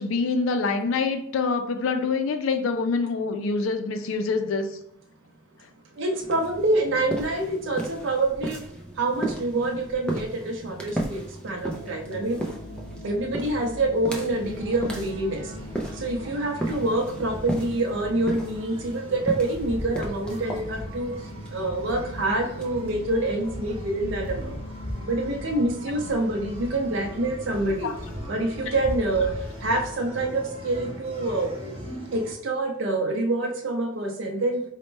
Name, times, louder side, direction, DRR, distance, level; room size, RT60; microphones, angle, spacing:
voice 1, 0.0-4.8 27.8-27.9 28.7-28.8, left 4 dB, 85° left, 8 dB, 0.4 m, -25 dB
voice 2, 5.9-8.6 9.0-12.4 13.0-15.5 15.9-24.6 25.0-27.9 28.3-31.5 32.1-34.6, right 2 dB, 75° right, 1 dB, 0.5 m, -26 dB
sound 1, 6.2-23.7, right 1 dB, 5° left, 0.4 m, -36 dB
sound 2, 11.6-29.9, left 1 dB, 40° left, 0.7 m, -43 dB
sound 3, 14.4-32.3, equal, 30° right, 0.9 m, -39 dB
4.1 x 2.1 x 3.2 m, 0.73 s
head